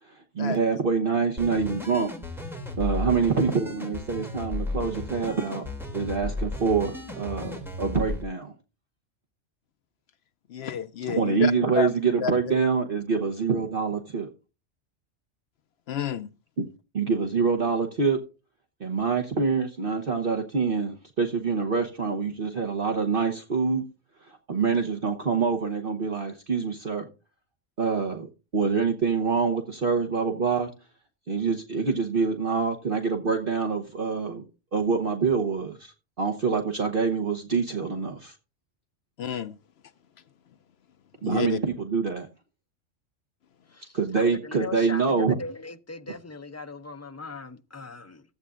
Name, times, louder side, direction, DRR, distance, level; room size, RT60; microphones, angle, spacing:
voice 1, 0.0-2.5 2.8-5.6 5.9-8.5 11.1-14.3 16.6-16.7 16.9-18.2 18.8-23.8 24.2-27.1 27.8-30.7 31.3-34.4 34.7-38.4 41.2-42.3 43.9-45.4, right 5 dB, 50° right, 1.2 m, -26 dB
sound 1, 1.4-8.2, left 2 dB, ahead, 2.7 m, -34 dB
voice 2, 10.5-11.9 12.2-12.3 15.9-16.3 39.2-39.5 41.2-41.6, left 7 dB, 65° left, 0.8 m, -29 dB
voice 3, 43.7-48.2, left 3 dB, 20° left, 0.4 m, -39 dB
15.0 x 8.2 x 2.5 m
omnidirectional pair, 1.3 m